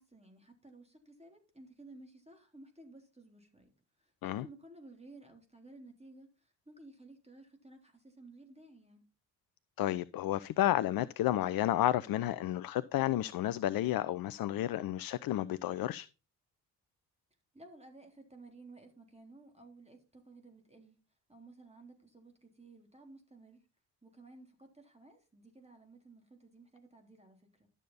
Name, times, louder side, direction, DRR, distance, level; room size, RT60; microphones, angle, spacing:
voice 1, 0.0-3.7 4.0-9.1 17.5-21.0 21.3-23.6 24.0-27.7, right 2 dB, 10° right, 3.6 m, -55 dB
voice 2, 9.8-16.1, left 13 dB, 45° left, 0.6 m, -31 dB
12.0 x 7.0 x 4.1 m
hypercardioid pair, 45°, 49 cm